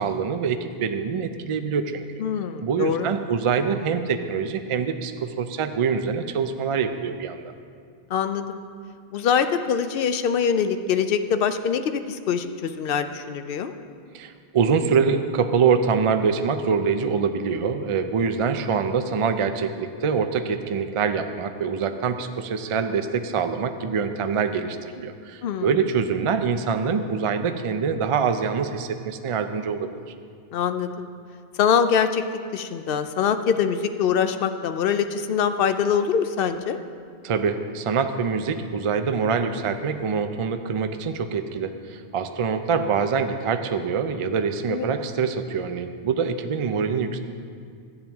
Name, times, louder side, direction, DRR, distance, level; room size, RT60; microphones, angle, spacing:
voice 1, 0.0-2.2 2.6-7.5 14.1-30.0 37.2-47.2, right 6 dB, 50° right, 8 dB, 0.3 m, -25 dB
voice 2, 2.2-3.1 8.1-8.6 9.1-13.7 25.4-25.7 30.5-31.1 31.6-32.2 32.5-36.8 44.7-44.9, left 7 dB, 65° left, 9 dB, 0.7 m, -24 dB
13.0 x 8.7 x 3.5 m, 2.2 s
omnidirectional pair, 1.1 m